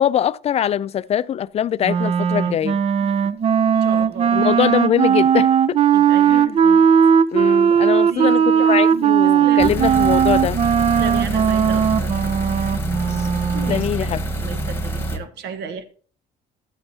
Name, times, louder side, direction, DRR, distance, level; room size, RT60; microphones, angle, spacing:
voice 1, 0.0-2.8 4.3-5.8 6.3-6.6 7.3-10.7 13.1-13.3 13.7-14.3, left 10 dB, 40° left, 0.4 m, -22 dB
Wind instrument woodwind instrument, 1.8-13.9, right 8 dB, 35° right, 0.5 m, -17 dB
voice 2, 3.0-3.3 3.8-4.5 5.9-6.9 8.1-10.0 11.0-12.2 13.5-14.1 14.3-15.8, right 5 dB, 75° right, 1.2 m, -34 dB
sound 1, 9.6-15.2, right 1 dB, 15° left, 1.2 m, -26 dB
13.0 x 9.5 x 2.8 m
cardioid pair, 110°, 17 cm